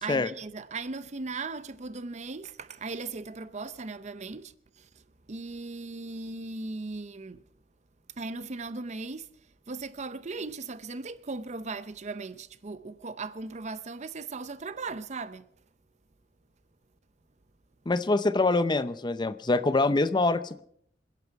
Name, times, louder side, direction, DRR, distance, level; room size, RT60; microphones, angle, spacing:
voice 1, 0.0-5.0 5.3-7.4 8.2-9.3 9.7-15.5, right 3 dB, 40° right, 0.7 m, -38 dB
voice 2, 17.9-20.6, left 2 dB, 25° left, 0.6 m, -25 dB
27.0 x 11.0 x 4.6 m
head